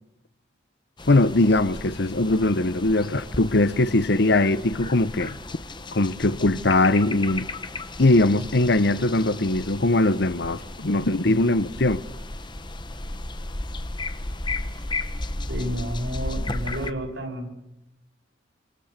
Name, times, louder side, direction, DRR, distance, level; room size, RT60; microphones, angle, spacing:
sound 1, 1.0-16.9, left 2 dB, 25° left, 1.1 m, -34 dB
voice 1, 1.1-5.4 5.9-7.5 8.0-12.0, left 2 dB, 55° left, 0.9 m, -21 dB
voice 2, 15.5-17.5, equal, 65° right, 6.3 m, -31 dB
27.5 x 26.5 x 6.7 m
head